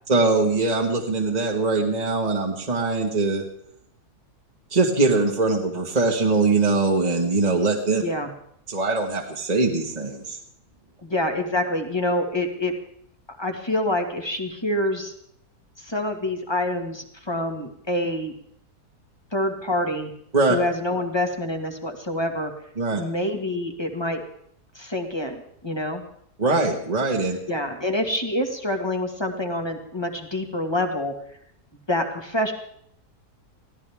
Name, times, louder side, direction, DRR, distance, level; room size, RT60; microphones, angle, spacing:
voice 1, 0.1-3.4 4.7-8.0 8.7-10.4 20.3-20.6 22.8-23.0 26.4-27.4, right 3 dB, 25° right, 0 dB, 1.7 m, -22 dB
voice 2, 11.0-12.7 13.3-15.1 15.8-18.3 19.3-20.1 20.5-22.5 23.0-24.2 24.8-26.0 27.5-31.1 31.9-32.5, left 1 dB, 15° left, 4 dB, 1.8 m, -26 dB
24.0 x 16.0 x 3.6 m, 0.70 s
omnidirectional pair, 1.7 m